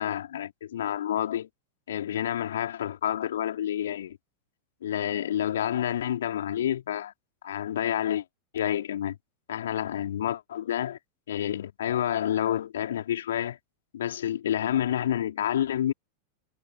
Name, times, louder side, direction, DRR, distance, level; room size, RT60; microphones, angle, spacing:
voice 1, 0.0-1.5 1.9-4.2 4.8-7.1 7.4-8.2 8.5-9.2 9.5-11.0 11.3-13.6 13.9-15.9, left 11 dB, 60° left, 3.8 m, -29 dB
figure-of-eight pair, 90°, 0 cm